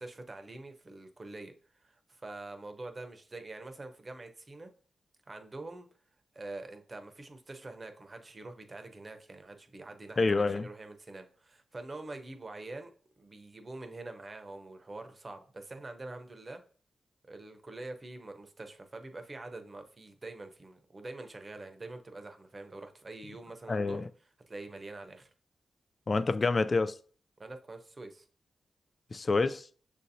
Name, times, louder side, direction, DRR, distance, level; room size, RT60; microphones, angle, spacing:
voice 1, 0.0-1.5 1.8-4.7 5.3-5.9 6.3-12.9 13.2-16.6 17.3-24.0 24.5-25.3 27.4-28.2, right 2 dB, 40° right, 0.7 m, -45 dB
voice 2, 10.2-10.7 23.7-24.1 26.1-26.9 29.1-29.7, left 3 dB, 45° left, 0.3 m, -27 dB
6.3 x 2.7 x 2.7 m
supercardioid pair, 50°, 0 cm